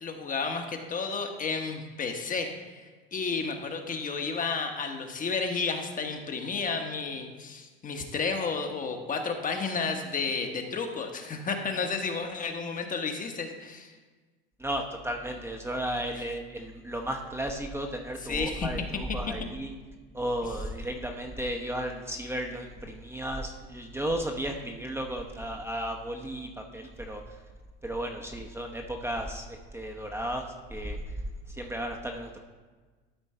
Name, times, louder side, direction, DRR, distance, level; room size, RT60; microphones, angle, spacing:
voice 1, 0.0-2.8 3.1-13.9 18.2-18.7, left 4 dB, 30° left, 4 dB, 1.1 m, -32 dB
voice 2, 14.6-19.7 20.1-27.2 27.8-31.0 31.5-32.4, right 1 dB, 10° right, 2 dB, 0.9 m, -34 dB
12.5 x 4.4 x 4.3 m, 1.3 s
hypercardioid pair, 95°, 29 cm